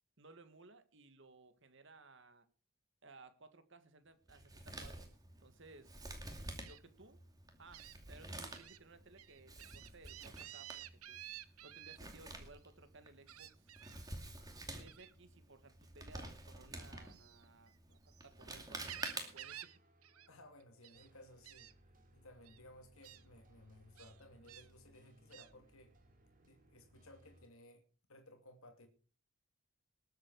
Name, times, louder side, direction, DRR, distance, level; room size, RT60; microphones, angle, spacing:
voice 1, 0.2-2.5 3.0-5.1 5.4-6.0 6.3-7.2 7.6-13.8 14.7-19.7, right 3 dB, 55° right, 1.8 m, -60 dB
Male speech man speaking, 4.3-19.6, right 2 dB, 15° right, 2.5 m, -50 dB
Gull seagull, 6.6-6.8 7.7-8.0 8.5-8.8 9.2-12.0 13.3-14.0 14.9-15.1 17.0-18.3 18.6-19.8 20.0-20.3 20.6-21.1 21.4-21.7 22.4-22.6 23.0-23.2 24.0-24.7 25.3-25.5, right 12 dB, 85° right, 1.0 m, -52 dB
sound 1, 19.6-27.5, equal, 40° right, 3.1 m, -66 dB
voice 2, 20.3-21.7 22.1-25.9 26.4-27.8 28.1-28.9, left 1 dB, 75° left, 2.4 m, -59 dB
20.5 x 8.2 x 4.7 m
head